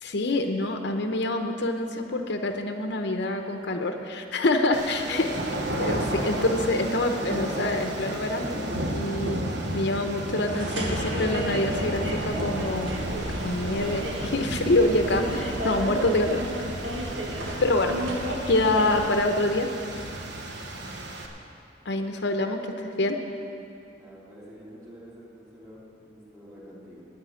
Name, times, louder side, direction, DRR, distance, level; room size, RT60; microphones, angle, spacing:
voice 1, 0.0-5.3 5.8-8.6 8.9-9.4 9.7-12.9 13.4-16.4 17.6-18.0 18.5-19.7 19.9-20.0 21.9-23.2, left 2 dB, 65° left, 5 dB, 0.8 m, -26 dB
sound 1, 4.7-21.3, right 1 dB, 65° right, 1.1 m, -33 dB
voice 2, 5.0-6.4 17.0-17.7 23.9-27.0, equal, 15° right, -5 dB, 3.3 m, -45 dB
sound 2, 10.4-19.3, right 1 dB, 90° right, 1.8 m, -32 dB
10.0 x 8.2 x 9.4 m, 2.7 s
head